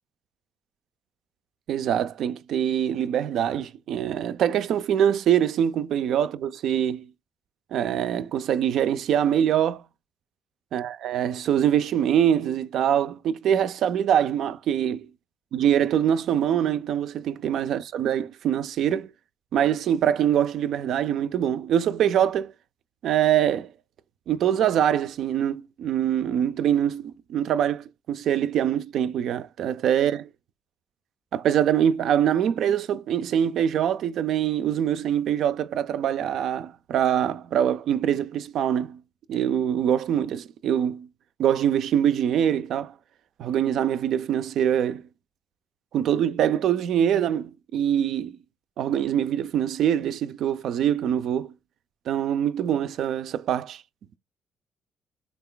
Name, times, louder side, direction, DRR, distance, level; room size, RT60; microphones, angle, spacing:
voice 1, 1.7-7.1 7.7-9.8 10.7-15.1 15.5-19.1 19.5-22.5 23.0-23.7 24.3-30.3 31.3-39.0 39.3-41.1 41.4-42.9 43.4-45.0 45.9-48.4 48.8-51.5 52.1-53.8, right 9 dB, 75° right, 0.3 m, -24 dB
3.9 x 2.3 x 3.7 m
cardioid pair, 90°, 0 cm